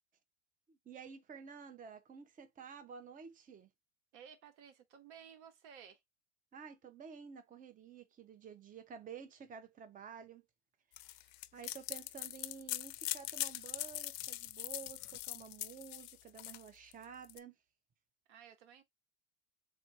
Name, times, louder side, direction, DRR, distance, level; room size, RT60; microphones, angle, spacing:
voice 1, 0.7-3.7 6.5-10.4 11.0-11.2 11.5-17.6, right 7 dB, 25° right, 0.8 m, -51 dB
voice 2, 4.1-6.0 18.3-18.8, right 8 dB, 75° right, 1.2 m, -56 dB
sound 1, 11.0-17.4, left 18 dB, 60° left, 0.5 m, -42 dB
3.6 x 2.6 x 4.6 m
hypercardioid pair, 95°, 36 cm